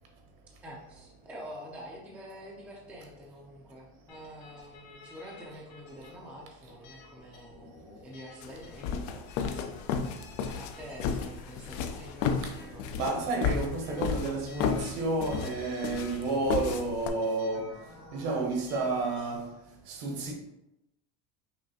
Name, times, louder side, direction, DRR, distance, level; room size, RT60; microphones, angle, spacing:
voice 1, 0.6-7.7 8.0-10.1 10.4-12.9, equal, 5° right, 0.4 m, -47 dB
sound 1, 4.1-19.4, left 2 dB, 65° left, 1.4 m, -53 dB
sound 2, 8.4-17.1, left 6 dB, 85° left, 0.6 m, -32 dB
voice 2, 13.0-17.7 18.1-19.5 19.9-20.3, right 3 dB, 60° right, 1.1 m, -31 dB
5.4 x 2.9 x 2.8 m
cardioid pair, 155°, 38 cm